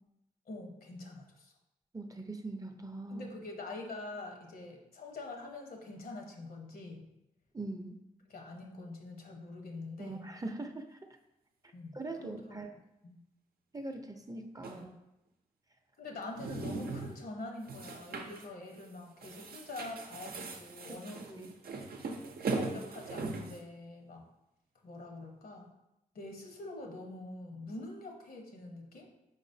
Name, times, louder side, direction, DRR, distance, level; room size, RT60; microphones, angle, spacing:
voice 1, 0.5-1.5 3.1-7.1 8.3-10.3 11.7-12.6 13.0-13.2 14.6-14.9 16.0-21.5 22.5-24.2 24.8-25.7 26.1-29.1, left 2 dB, 70° left, 1 dB, 1.0 m, -45 dB
voice 2, 1.9-3.3 7.5-8.0 10.0-11.0 11.9-12.7 13.7-14.9 20.9-21.0 21.4-21.5, right 2 dB, 20° right, 5 dB, 0.6 m, -41 dB
sound 1, 14.6-14.8 16.2-17.2 17.7-18.5 18.8-18.9 19.2-23.6, right 3 dB, 70° right, 0.6 m, -39 dB
4.8 x 4.0 x 2.7 m, 0.89 s
supercardioid pair, 45°, 16 cm